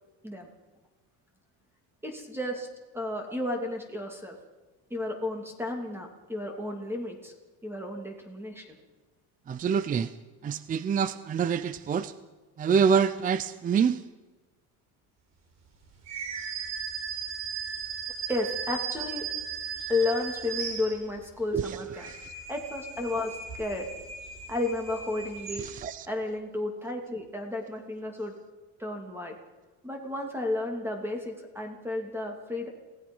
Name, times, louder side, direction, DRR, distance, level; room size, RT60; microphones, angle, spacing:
voice 1, 2.0-2.7 2.9-4.3 4.9-7.3 7.6-8.8 18.3-19.2 19.9-22.1 22.5-23.9 24.5-25.6 26.1-28.3 28.8-29.3 29.8-32.7, left 2 dB, 5° right, 2 dB, 2.8 m, -32 dB
voice 2, 9.5-10.1 10.4-12.1 12.6-14.0 21.5-21.8 22.1-22.2 25.6-26.1, right 7 dB, 20° right, 14 dB, 0.5 m, -26 dB
knifegrinder.whistle, 16.0-21.3 21.8-26.0, right 6 dB, 45° right, 4.3 m, -37 dB
27.5 x 17.5 x 5.5 m, 1.2 s
cardioid pair, 155°, 39 cm